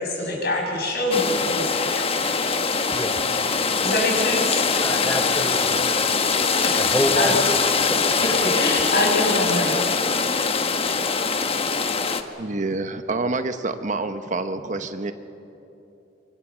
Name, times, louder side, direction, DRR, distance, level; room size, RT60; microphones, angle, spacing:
voice 1, 0.0-2.3 3.8-4.7 6.6-7.3 8.2-10.1, left 1 dB, 55° left, -1 dB, 6.7 m, -25 dB
sound 1, 1.1-12.2, left 5 dB, 30° left, 1.1 m, -22 dB
voice 2, 2.9-3.5 4.8-5.8 6.8-7.6 7.9-8.3, equal, 10° left, 2 dB, 1.2 m, -28 dB
voice 3, 12.4-15.1, right 3 dB, 40° right, 9 dB, 0.9 m, -27 dB
25.5 x 24.5 x 7.4 m, 2.9 s
head